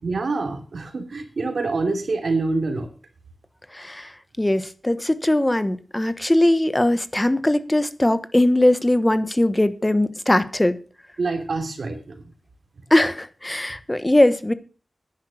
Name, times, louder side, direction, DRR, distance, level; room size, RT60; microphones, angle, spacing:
voice 1, 0.0-2.9 11.2-12.2, right 3 dB, 80° right, 6 dB, 2.9 m, -26 dB
voice 2, 3.7-4.1 4.4-10.8 12.9-14.5, left 1 dB, 20° left, 13 dB, 1.2 m, -20 dB
10.5 x 10.5 x 6.3 m, 0.37 s
wide cardioid pair, 75°, 0 cm